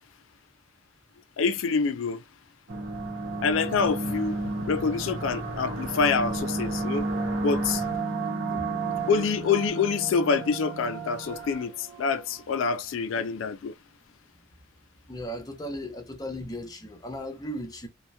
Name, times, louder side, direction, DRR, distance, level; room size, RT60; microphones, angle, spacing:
voice 1, 1.4-2.2 3.4-7.1 7.4-7.8 9.1-13.7, left 5 dB, 85° left, 0.4 m, -26 dB
sound 1, 2.7-12.4, right 2 dB, 65° right, 0.8 m, -32 dB
voice 2, 8.5-8.8 15.1-17.9, equal, 20° left, 0.6 m, -36 dB
2.7 x 2.0 x 2.2 m
head